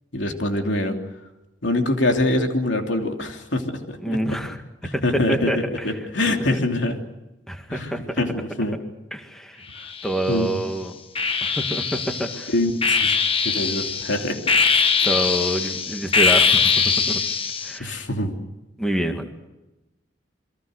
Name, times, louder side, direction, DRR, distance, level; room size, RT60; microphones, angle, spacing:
voice 1, 0.1-1.0 1.6-4.4 4.8-7.0 7.7-8.8 10.3-10.5 12.5-13.2 13.4-14.5 17.8-18.3, left 1 dB, 80° left, 3 dB, 3.0 m, -24 dB
voice 2, 4.0-4.6 4.9-6.0 6.5-6.6 7.5-8.2 9.1-9.6 10.0-10.9 11.4-12.5 15.0-17.2 17.6-18.0 18.8-19.3, right 1 dB, 5° left, 4 dB, 2.1 m, -27 dB
sound 1, 9.8-10.5 11.2-17.8, left 5 dB, 30° left, 1.2 m, -22 dB
28.5 x 22.5 x 6.6 m, 1.0 s
head